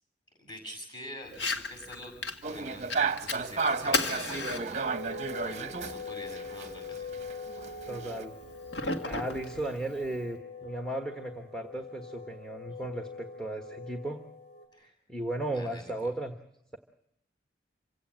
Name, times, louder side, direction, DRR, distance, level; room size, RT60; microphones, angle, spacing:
voice 1, 0.4-2.1 2.4-7.1 14.7-15.0 15.5-16.1, equal, 25° left, 3 dB, 7.2 m, -46 dB
Fire, 1.3-10.3, left 3 dB, 75° left, 1.9 m, -37 dB
sound 1, 2.4-6.7 7.0-8.2, right 4 dB, 40° right, 0.8 m, -33 dB
sound 2, 4.8-14.7, left 4 dB, 40° left, 5.2 m, -43 dB
voice 2, 7.9-8.3 9.0-14.2 14.8-16.3, right 1 dB, 5° left, 5 dB, 1.3 m, -35 dB
27.5 x 17.0 x 7.7 m, 0.79 s
head